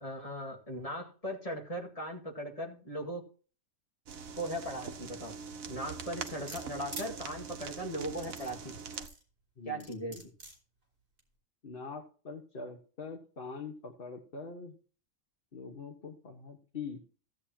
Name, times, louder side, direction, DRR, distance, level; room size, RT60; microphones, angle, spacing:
voice 1, 0.0-3.2 4.3-5.3 5.7-8.8 9.7-10.2, equal, 25° left, 1 dB, 2.0 m, -38 dB
sound 1, 4.1-9.1, right 6 dB, 85° right, 1.4 m, -43 dB
sound 2, 6.2-7.1 8.0-9.2 9.8-10.6 11.2-11.3, right 1 dB, 65° right, 3.7 m, -45 dB
voice 2, 9.6-10.2 11.6-14.8 15.5-17.0, left 4 dB, 45° left, 3 dB, 1.5 m, -44 dB
16.0 x 8.2 x 2.9 m, 0.39 s
omnidirectional pair, 1.4 m